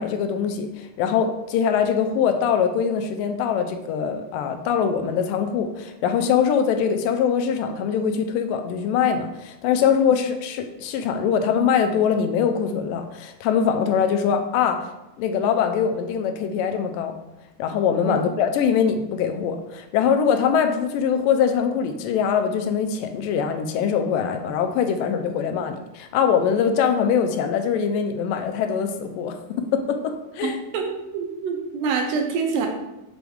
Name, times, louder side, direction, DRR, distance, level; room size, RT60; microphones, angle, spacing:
voice 1, 0.0-14.9 15.2-17.2 17.6-30.6, left 7 dB, 85° left, 7 dB, 2.2 m, -23 dB
voice 2, 30.4-30.9 31.1-32.7, right 5 dB, 90° right, 2 dB, 2.7 m, -26 dB
6.0 x 6.0 x 3.6 m, 0.96 s
omnidirectional pair, 3.9 m